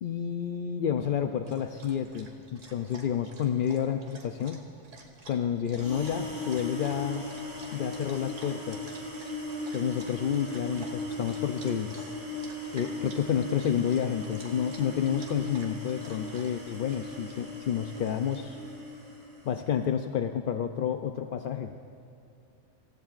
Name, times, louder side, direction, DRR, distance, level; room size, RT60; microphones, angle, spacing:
voice 1, 0.0-4.6 5.3-7.3 7.7-8.8 9.7-12.1 12.7-18.6 19.4-21.8, left 8 dB, 65° left, 6 dB, 0.5 m, -30 dB
Dog, 1.0-18.4, right 2 dB, 65° right, 1.9 m, -52 dB
sound 1, 5.7-19.6, left 2 dB, 35° right, 3.7 m, -38 dB
26.5 x 15.5 x 2.5 m, 2.5 s
omnidirectional pair, 1.4 m